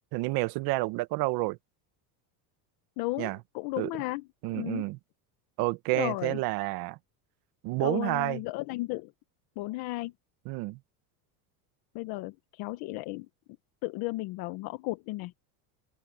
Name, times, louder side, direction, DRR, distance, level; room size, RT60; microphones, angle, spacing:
voice 1, 0.1-1.6 3.2-3.4 3.8-3.9 4.4-5.0 5.6-7.0 7.6-8.4 10.4-10.8, right 21 dB, 60° right, 1.3 m, -29 dB
voice 2, 3.0-4.2 4.5-4.9 5.9-6.4 7.8-9.1 9.6-10.1 11.9-13.3 13.8-15.3, left 21 dB, 60° left, 1.2 m, -34 dB
open air
cardioid pair, 150°, 41 cm